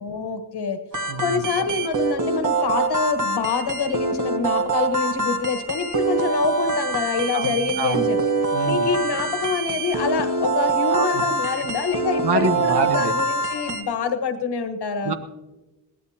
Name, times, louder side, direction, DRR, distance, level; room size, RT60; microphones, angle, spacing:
voice 1, 0.0-0.8 1.2-8.2 8.6-15.1, left 5 dB, 75° left, 9 dB, 1.4 m, -26 dB
sound 1, 0.9-13.8, right 3 dB, 50° right, 1.4 m, -24 dB
voice 2, 1.1-1.4 7.3-8.1 8.5-8.9 10.9-11.2 11.6-11.7 12.2-13.1 15.0-15.1, right 4 dB, 90° right, 8 dB, 1.3 m, -26 dB
22.0 x 17.0 x 2.9 m, 1.1 s
cardioid pair, 85°, 40 cm